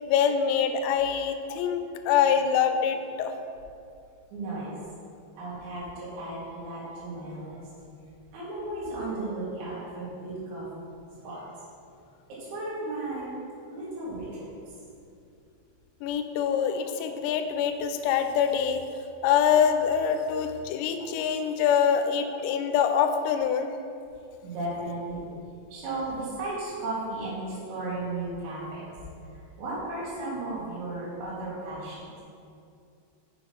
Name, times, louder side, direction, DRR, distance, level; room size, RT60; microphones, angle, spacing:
voice 1, 0.1-3.3 16.0-18.8 19.2-23.7, left 8 dB, 80° left, 7 dB, 2.6 m, -25 dB
voice 2, 4.3-4.8 5.4-7.6 8.3-10.7 11.2-11.4 12.3-13.4 13.7-14.5 24.1-25.3 25.7-28.9 29.3-32.0, right 2 dB, 65° right, -9 dB, 3.3 m, -35 dB
6.7 x 6.1 x 4.9 m, 2.5 s
omnidirectional pair, 5.3 m